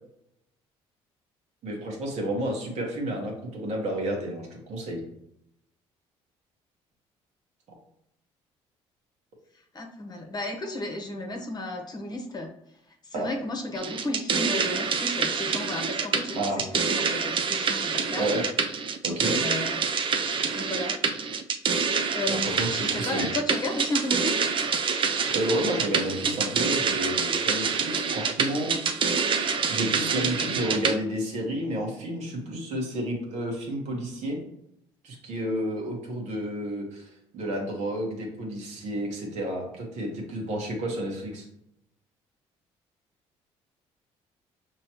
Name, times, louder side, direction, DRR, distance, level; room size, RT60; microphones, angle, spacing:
voice 1, 1.6-5.0 13.1-13.3 16.3-16.6 18.2-18.4 19.0-19.4 22.3-23.3 25.3-28.8 29.1-29.4 29.7-34.4 35.0-41.5, right 1 dB, 65° right, 0 dB, 1.3 m, -31 dB
voice 2, 9.7-12.5 13.1-18.3 19.1-19.8 20.5-21.0 22.1-24.5, left 2 dB, 35° left, 3 dB, 1.0 m, -33 dB
sound 1, 13.8-31.0, right 5 dB, 40° right, 0.5 m, -27 dB
5.5 x 3.0 x 3.0 m, 0.80 s
supercardioid pair, 70°, 13 cm